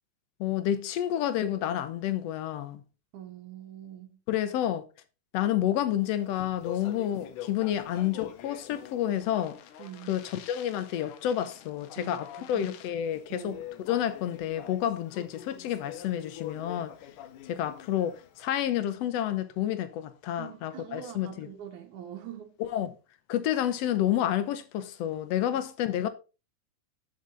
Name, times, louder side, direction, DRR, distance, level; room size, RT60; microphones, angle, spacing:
voice 1, 0.4-2.8 4.3-4.8 5.3-9.6 10.1-13.6 13.9-16.9 17.4-21.5 22.6-22.9 23.3-26.1, left 11 dB, 70° left, 1.6 m, -29 dB
voice 2, 3.1-4.2 9.8-10.2 12.0-12.8 13.3-13.7 20.4-22.5 25.5-25.6, right 10 dB, 75° right, 2.5 m, -44 dB
Speech, 6.1-18.5, left 11 dB, 90° left, 2.4 m, -45 dB
8.6 x 6.8 x 3.9 m
omnidirectional pair, 3.5 m